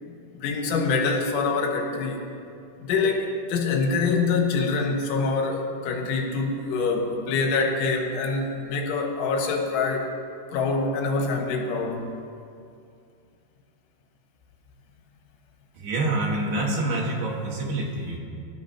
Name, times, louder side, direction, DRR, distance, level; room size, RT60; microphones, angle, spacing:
voice 1, 0.0-2.3 2.8-10.1 10.5-12.0, left 4 dB, 90° left, 1 dB, 4.0 m, -25 dB
voice 2, 15.8-18.2, right 2 dB, 65° right, -1 dB, 3.5 m, -27 dB
25.5 x 13.0 x 2.9 m, 2.4 s
omnidirectional pair, 5.3 m